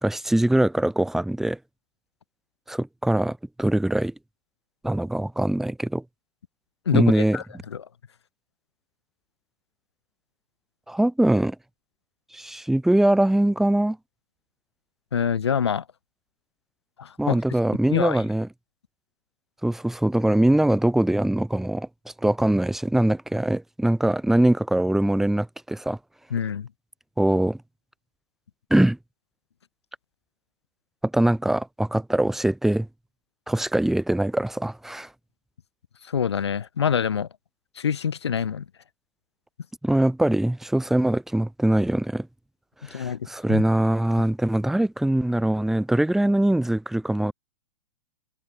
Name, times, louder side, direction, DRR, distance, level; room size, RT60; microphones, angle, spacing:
voice 1, 0.0-1.6 2.7-4.1 4.8-6.0 6.9-7.4 10.9-11.6 12.3-14.0 17.2-18.5 19.6-21.9 22.2-26.0 27.2-27.6 28.7-29.0 31.1-32.9 33.5-35.1 39.8-42.3 42.8-47.3, right 1 dB, ahead, 0.9 m, -22 dB
voice 2, 6.9-7.4 7.7-7.8 15.1-15.8 17.0-17.4 17.9-18.2 26.3-26.7 36.0-37.3 37.8-38.7 42.8-43.6, left 7 dB, 75° left, 1.0 m, -26 dB
figure-of-eight pair, 105°, 14 cm